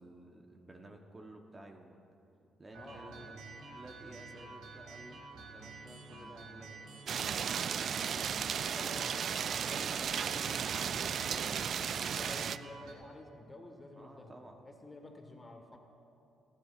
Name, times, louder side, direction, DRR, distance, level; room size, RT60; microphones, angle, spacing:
voice 1, 0.0-2.0 2.6-3.4 3.7-5.2 5.5-8.2 14.0-14.6, right 2 dB, 25° right, 2 dB, 1.1 m, -53 dB
voice 2, 2.7-3.2 8.7-14.4 14.6-15.8, left 1 dB, 20° left, 3 dB, 1.6 m, -50 dB
sound 1, 2.7-12.9, right 3 dB, 85° right, 1.7 m, -49 dB
sound 2, 7.1-12.6, right 7 dB, 60° right, 0.3 m, -35 dB
27.5 x 10.5 x 2.5 m, 2.7 s
cardioid pair, 90°, 0 cm